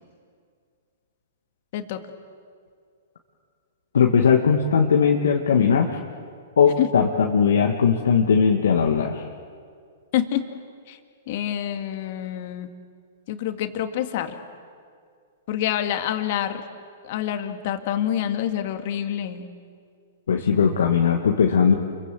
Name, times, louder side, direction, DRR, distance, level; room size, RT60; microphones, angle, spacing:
voice 1, 3.9-6.0 6.6-9.3 20.3-21.8, left 6 dB, 75° left, 1 dB, 1.7 m, -19 dB
voice 2, 10.1-10.5 10.9-11.0 11.3-12.7 13.3-14.3 15.5-16.6 17.0-19.5, left 11 dB, 55° left, 7 dB, 2.0 m, -27 dB
29.5 x 23.0 x 7.6 m, 2.2 s
hypercardioid pair, 115°, 0 cm